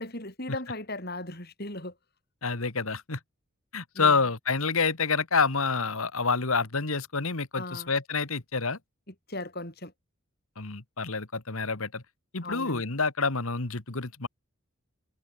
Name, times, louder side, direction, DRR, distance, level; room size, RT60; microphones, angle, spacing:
voice 1, 0.0-1.9 3.9-4.2 7.5-7.9 9.3-9.9 12.4-12.8, left 2 dB, 45° left, 7.8 m, -37 dB
voice 2, 2.4-3.2 3.7-8.8 10.6-12.0 12.3-14.3, left 4 dB, 70° left, 2.0 m, -28 dB
head